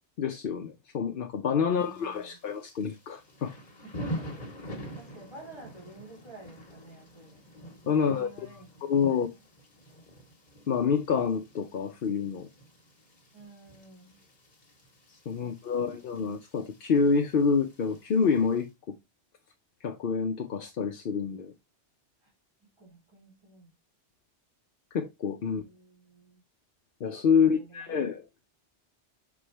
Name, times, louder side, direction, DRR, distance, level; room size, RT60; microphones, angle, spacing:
voice 1, 0.2-3.5 7.9-8.3 8.8-9.3 10.7-12.5 15.3-19.0 19.8-21.5 24.9-25.6 27.0-28.2, left 6 dB, 60° left, 0.8 m, -27 dB
voice 2, 1.7-2.4 3.8-4.2 5.0-7.4 8.0-8.7 9.1-9.4 13.3-14.2 15.4-15.9 22.2-22.3 22.8-23.7 25.5-26.4 27.3-28.0, right 2 dB, 25° right, 3.2 m, -51 dB
Thunder / Rain, 1.8-18.7, equal, 40° left, 1.7 m, -46 dB
6.0 x 4.8 x 3.3 m
omnidirectional pair, 1.2 m